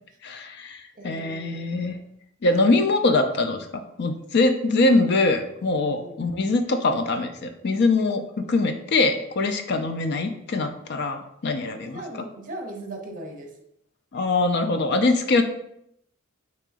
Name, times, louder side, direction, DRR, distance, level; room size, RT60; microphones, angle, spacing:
voice 1, 0.2-2.0 2.4-12.3 14.1-15.4, left 2 dB, 55° left, 7 dB, 0.5 m, -23 dB
voice 2, 0.9-2.0 6.0-6.3 11.8-13.6, right 2 dB, 40° right, 2 dB, 0.8 m, -39 dB
3.7 x 3.0 x 4.7 m, 0.76 s
head